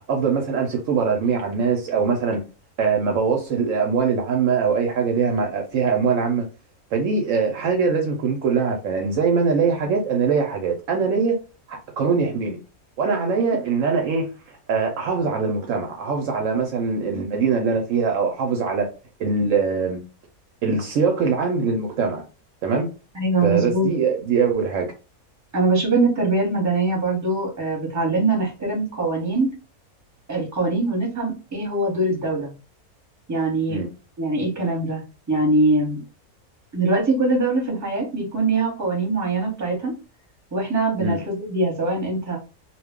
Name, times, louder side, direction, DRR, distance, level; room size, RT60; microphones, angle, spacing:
voice 1, 0.1-2.4 2.8-6.5 6.9-11.4 11.7-12.6 13.0-14.3 14.7-18.9 19.2-20.0 20.6-22.2 22.6-22.9 23.4-24.9 33.7-33.9 41.0-41.2, right 5 dB, 70° right, 0.9 m, -22 dB
voice 2, 23.1-23.9 25.5-29.5 30.3-32.5 33.3-33.8 34.2-35.0 35.3-36.0 36.7-39.9 40.5-42.4, right 2 dB, 15° right, 0.9 m, -22 dB
2.4 x 2.2 x 3.5 m
omnidirectional pair, 1.5 m